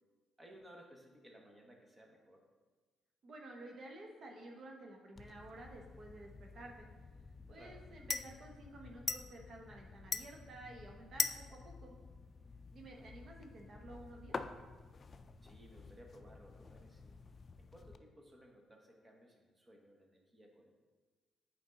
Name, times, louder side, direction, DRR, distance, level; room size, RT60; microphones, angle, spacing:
voice 1, 0.4-2.4 7.5-7.8 12.9-13.2 15.4-17.1 17.6-20.7, equal, 20° right, 1 dB, 1.5 m, -59 dB
voice 2, 3.2-6.9 7.5-11.9 12.7-14.4, right 2 dB, 55° right, 1 dB, 1.2 m, -52 dB
sound 1, 5.2-18.0, left 5 dB, 40° left, 0.4 m, -45 dB
9.2 x 4.6 x 3.9 m, 1.4 s
cardioid pair, 90°, 0 cm